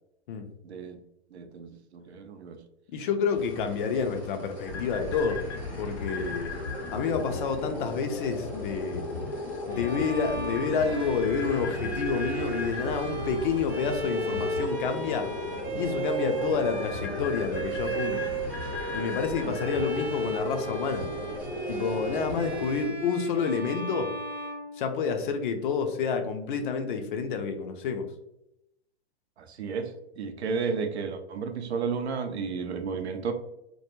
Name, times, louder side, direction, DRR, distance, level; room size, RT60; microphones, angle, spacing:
voice 1, 0.6-1.0 1.3-2.6 19.4-19.7 29.4-33.3, right 5 dB, 80° right, 7 dB, 0.5 m, -33 dB
voice 2, 2.9-5.4 5.8-6.5 6.9-9.0 9.7-15.3 15.7-18.3 18.9-21.1 21.7-24.1 24.8-28.1, left 5 dB, 50° left, 6 dB, 0.5 m, -29 dB
sound 1, 3.3-22.9, left 1 dB, 5° left, 0.6 m, -46 dB
sound 2, 4.7-22.6, left 3 dB, 85° left, 0.8 m, -36 dB
Bowed string instrument, 9.7-25.4, right 2 dB, 30° right, 0.8 m, -35 dB
2.2 x 2.1 x 2.9 m, 0.84 s
hypercardioid pair, 115°, 32 cm